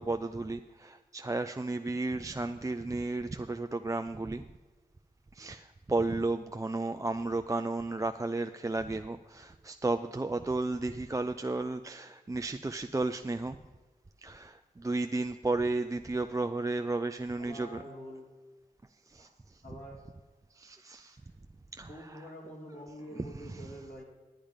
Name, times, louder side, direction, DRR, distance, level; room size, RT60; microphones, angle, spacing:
voice 1, 0.0-4.4 5.3-13.6 14.2-17.8 19.1-19.3 20.5-21.2 21.7-22.2 23.5-23.6, right 2 dB, 20° right, 7 dB, 0.4 m, -33 dB
voice 2, 6.9-7.3 15.8-16.0 17.4-18.3 19.2-19.3 19.6-20.1 20.9-21.3 21.8-24.0, equal, 55° left, -3 dB, 2.8 m, -47 dB
10.0 x 8.9 x 5.1 m, 1.3 s
cardioid pair, 55°, 16 cm